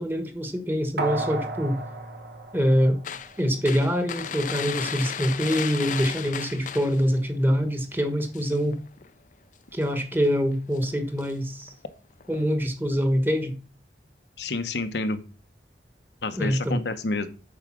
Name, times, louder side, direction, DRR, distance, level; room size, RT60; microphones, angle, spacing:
voice 1, 0.0-1.8 2.5-3.0 3.4-8.8 9.7-11.7 12.3-13.6 16.4-16.8, equal, 10° right, 1.2 m, -25 dB
sound 1, 1.0-3.5 3.9-4.0, right 2 dB, 65° right, 1.3 m, -33 dB
sound 2, 3.0-7.2 7.6-7.8 8.1-9.1 9.8-10.1 10.6-11.3 11.6-11.7 12.2-12.5, left 8 dB, 45° left, 0.5 m, -35 dB
voice 2, 14.4-15.2 16.2-17.3, left 3 dB, 75° left, 0.9 m, -29 dB
8.6 x 4.8 x 6.1 m
head